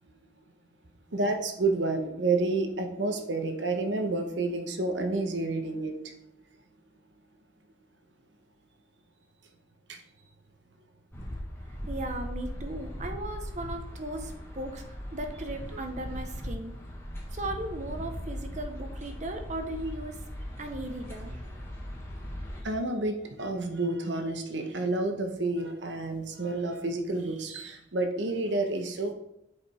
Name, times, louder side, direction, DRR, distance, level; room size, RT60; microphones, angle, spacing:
voice 1, 1.1-6.1 9.9-10.0 15.7-15.8 22.6-29.1, right 2 dB, 75° right, 6 dB, 1.1 m, -30 dB
sound 1, 11.1-22.6, equal, 15° left, 1.4 m, -39 dB
voice 2, 11.7-16.7 17.3-20.3 20.6-21.4, right 1 dB, 40° right, 5 dB, 0.9 m, -37 dB
7.6 x 5.2 x 4.3 m, 0.84 s
head